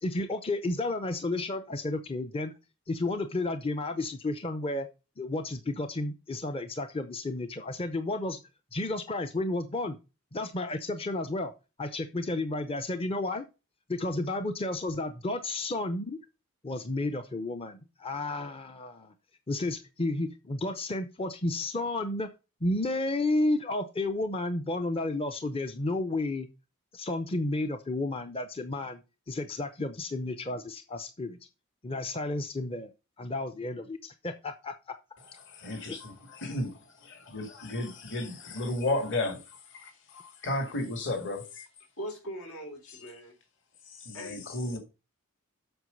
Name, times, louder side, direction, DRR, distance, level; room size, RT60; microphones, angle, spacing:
voice 1, 0.0-2.5 2.9-4.9 5.2-8.4 8.7-10.0 10.3-11.5 11.8-13.5 13.9-16.2 16.6-19.1 19.5-22.3 22.6-26.5 26.9-29.0 29.3-31.4 31.8-32.9 33.2-34.7 35.9-36.0, left 2 dB, 25° left, 0.6 m, -32 dB
voice 2, 35.5-39.4 39.7-41.7 42.9-43.1 43.9-44.8, left 2 dB, 55° left, 2.2 m, -34 dB
voice 3, 42.0-43.3 44.1-44.8, equal, 80° left, 3.9 m, -41 dB
8.0 x 5.8 x 5.2 m
head